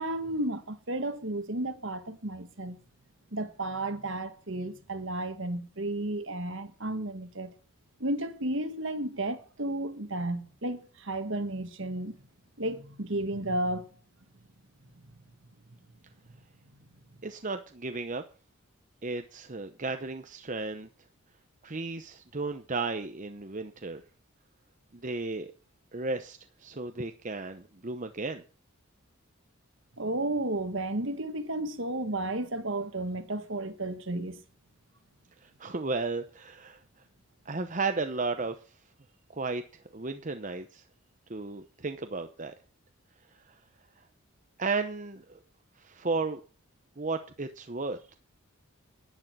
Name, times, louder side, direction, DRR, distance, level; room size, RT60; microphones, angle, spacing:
voice 1, 0.0-2.8 3.3-7.5 8.0-12.2 12.6-13.9 30.0-34.4, right 1 dB, 60° right, 1.7 m, -33 dB
voice 2, 17.2-18.2 19.0-20.9 21.6-24.0 24.9-25.5 25.9-28.4 35.4-36.8 37.4-38.6 39.3-39.6 39.9-40.8 41.3-42.5 43.5-43.6 44.6-45.4 45.8-46.4 47.0-48.1, right 3 dB, 35° right, 0.8 m, -34 dB
11.0 x 10.5 x 6.1 m
head